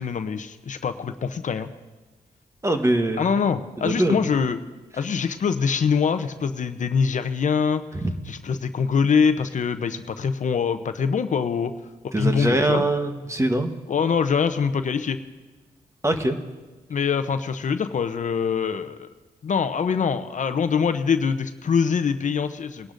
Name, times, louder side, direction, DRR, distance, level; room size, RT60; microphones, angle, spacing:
voice 1, 0.0-1.7 3.2-4.6 4.9-7.8 8.3-11.7 12.2-12.8 13.9-15.2 16.9-19.1 19.4-22.9, left 6 dB, 55° left, 10 dB, 0.7 m, -24 dB
voice 2, 2.6-3.4 3.8-4.2 7.9-8.1 12.1-13.7 16.0-16.4, right 1 dB, 20° right, 7 dB, 1.1 m, -23 dB
21.5 x 11.5 x 2.6 m, 1.2 s
cardioid pair, 70°, 15 cm